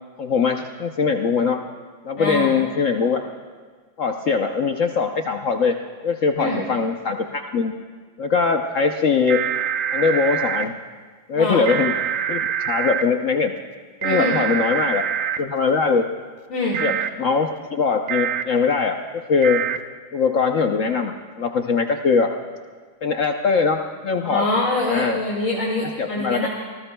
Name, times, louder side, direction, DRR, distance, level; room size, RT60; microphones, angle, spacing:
voice 1, 0.2-1.6 2.0-3.4 4.0-5.7 6.0-7.7 8.2-9.5 9.9-10.8 11.3-11.9 12.3-12.4 12.7-13.5 14.0-15.0 15.4-16.1 16.8-19.6 20.1-22.3 23.0-24.5 24.9-25.2 25.8-26.5, left 5 dB, 65° left, 4 dB, 0.7 m, -21 dB
voice 2, 2.2-2.5 6.4-6.6 11.3-11.6 14.0-14.3 16.5-16.8 24.2-26.5, left 2 dB, 40° left, -5 dB, 2.4 m, -24 dB
Winter Storm Watch, 9.3-10.6 11.7-13.0 14.0-15.4 16.7-17.1 18.1-18.4 19.4-19.8, right 8 dB, 85° right, 1.5 m, -25 dB
27.0 x 19.0 x 2.2 m, 1.5 s
omnidirectional pair, 2.1 m